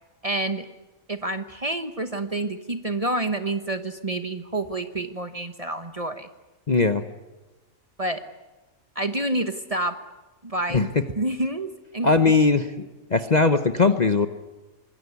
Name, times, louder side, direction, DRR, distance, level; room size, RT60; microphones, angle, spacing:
voice 1, 0.2-0.7 1.1-6.3 8.0-8.2 8.9-10.0 10.4-10.9 11.2-12.1, right 2 dB, 25° right, 9 dB, 1.1 m, -28 dB
voice 2, 6.7-7.0 10.7-10.9 12.0-14.3, left 4 dB, 35° left, 9 dB, 0.9 m, -20 dB
25.5 x 21.0 x 8.3 m, 1.1 s
omnidirectional pair, 1.5 m